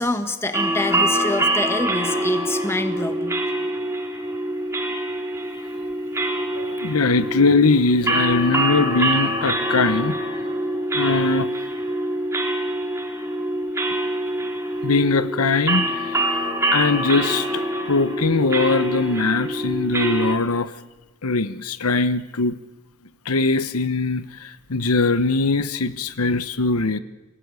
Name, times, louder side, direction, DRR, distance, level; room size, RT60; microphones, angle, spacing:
voice 1, 0.0-3.4, left 2 dB, 10° left, 8 dB, 1.6 m, -26 dB
sound 1, 0.5-20.4, right 1 dB, 10° right, 3.0 m, -25 dB
voice 2, 6.5-10.2 10.9-11.5 14.8-16.3 16.7-17.6 17.9-20.7 21.2-22.6 23.2-27.0, left 3 dB, 75° left, 13 dB, 1.0 m, -21 dB
26.5 x 18.0 x 9.7 m, 1.1 s
head